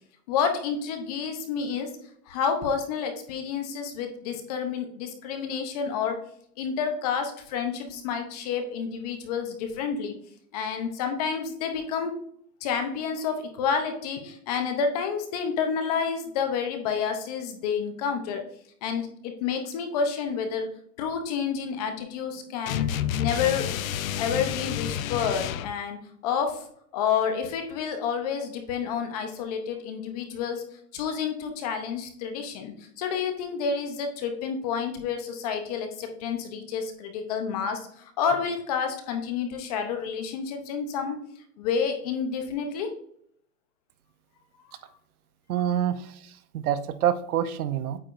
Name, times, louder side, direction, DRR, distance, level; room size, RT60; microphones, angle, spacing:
voice 1, 0.3-1.9 2.3-6.2 6.6-10.1 10.5-12.1 12.6-18.4 18.8-20.7 21.0-22.9 23.2-23.7 24.2-26.0 26.2-26.7 26.9-30.6 30.9-41.2 41.6-42.9, left 6 dB, 25° left, 6 dB, 0.7 m, -29 dB
sound 1, 22.7-25.7, left 10 dB, 60° left, 0.6 m, -29 dB
voice 2, 45.5-46.1 46.5-48.0, right 10 dB, 70° right, 13 dB, 0.8 m, -26 dB
8.6 x 4.8 x 2.5 m, 0.65 s
supercardioid pair, 165°, 46 cm